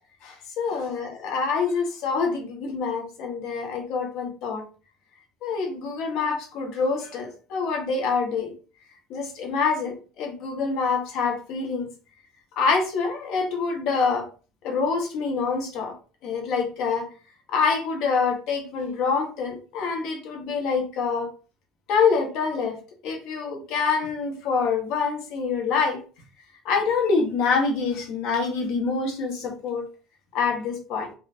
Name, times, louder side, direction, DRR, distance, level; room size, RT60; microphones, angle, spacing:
voice 1, 0.2-4.6 5.4-8.5 9.1-11.9 12.6-14.3 14.6-15.9 16.2-17.1 17.5-21.3 21.9-22.8 23.0-26.0 26.6-29.8 30.3-31.1, left 5 dB, 65° left, 3 dB, 1.1 m, -26 dB
3.2 x 2.4 x 2.6 m, 0.36 s
supercardioid pair, 85°, 0 cm